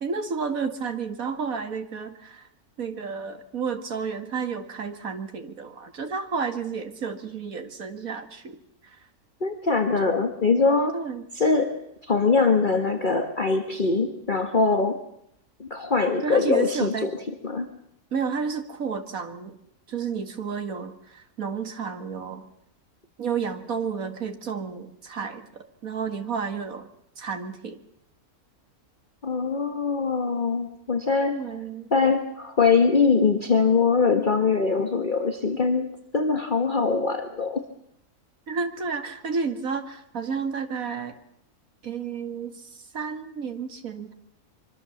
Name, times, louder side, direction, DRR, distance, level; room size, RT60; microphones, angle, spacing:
voice 1, 0.0-2.5 2.8-8.6 8.8-9.0 10.9-11.2 16.2-17.1 18.1-19.6 19.9-22.5 23.2-26.9 27.2-27.8 31.3-31.9 38.5-41.1 41.8-44.1, right 5 dB, 65° right, 7 dB, 2.4 m, -31 dB
voice 2, 9.4-11.0 11.4-11.7 12.0-15.0 15.6-17.1 17.4-17.7 29.2-31.4 31.9-37.6, left 4 dB, 35° left, 5 dB, 1.6 m, -22 dB
24.5 x 24.5 x 7.2 m, 0.77 s
omnidirectional pair, 1.6 m